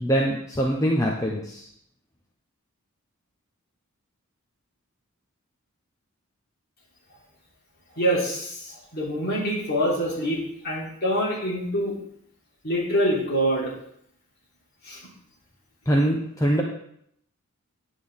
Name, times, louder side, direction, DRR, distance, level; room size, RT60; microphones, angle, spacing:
voice 1, 0.0-1.7 15.9-16.6, equal, 15° left, -2 dB, 0.8 m, -23 dB
voice 2, 8.0-11.9 12.6-13.7 14.8-15.0, equal, 45° left, -5 dB, 3.4 m, -25 dB
9.9 x 8.4 x 3.7 m, 0.70 s
head